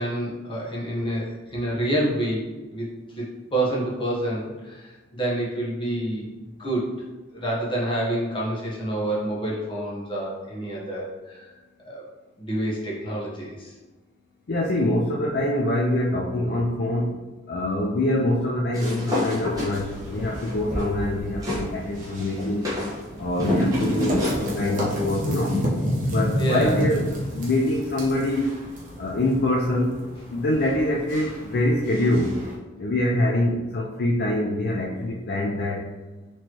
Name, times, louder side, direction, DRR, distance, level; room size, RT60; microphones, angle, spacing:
voice 1, 0.0-2.9 3.2-3.3 3.5-6.3 6.6-6.8 7.3-11.5 11.8-12.0 12.4-13.7 26.4-26.8, right 1 dB, 25° left, -5 dB, 0.9 m, -28 dB
voice 2, 14.5-17.1 17.5-22.7 23.2-25.6 26.1-27.0 27.3-28.5 29.0-30.0 30.3-32.4 32.7-35.9, left 1 dB, 50° left, -2 dB, 0.4 m, -24 dB
sound 1, 18.7-21.7 22.0-24.4, left 2 dB, 20° right, 1.2 m, -29 dB
sound 2, 19.3-32.5, equal, 40° right, 0.9 m, -30 dB
4.3 x 3.0 x 2.9 m, 1.2 s
head